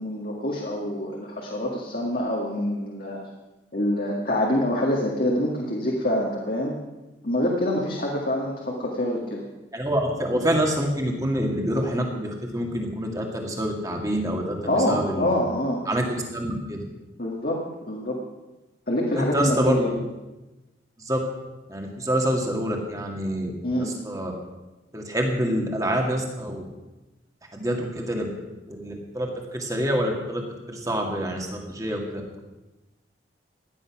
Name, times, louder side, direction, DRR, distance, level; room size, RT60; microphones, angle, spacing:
voice 1, 0.0-3.2 3.7-6.7 7.2-9.4 14.6-15.8 17.2-17.6 17.9-18.2 18.9-19.9 23.6-23.9, left 1 dB, 50° left, -3 dB, 2.0 m, -26 dB
voice 2, 9.7-15.3 15.9-16.8 19.1-20.0 21.0-21.2 21.7-23.5 23.8-24.3 24.9-26.6 27.5-28.3 28.7-32.2, equal, 20° right, 1 dB, 2.2 m, -26 dB
16.5 x 11.0 x 6.1 m, 1.1 s
head